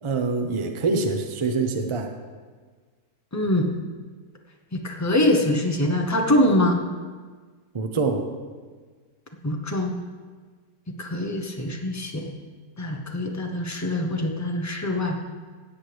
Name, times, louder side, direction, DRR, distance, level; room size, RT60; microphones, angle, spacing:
voice 1, 0.0-2.1 7.7-8.2, right 3 dB, 30° right, 5 dB, 0.6 m, -25 dB
voice 2, 3.3-3.7 4.7-6.8 9.4-10.0 11.0-12.3 12.8-15.3, left 1 dB, 15° left, 2 dB, 0.6 m, -24 dB
17.0 x 7.8 x 3.4 m, 1.5 s
omnidirectional pair, 1.7 m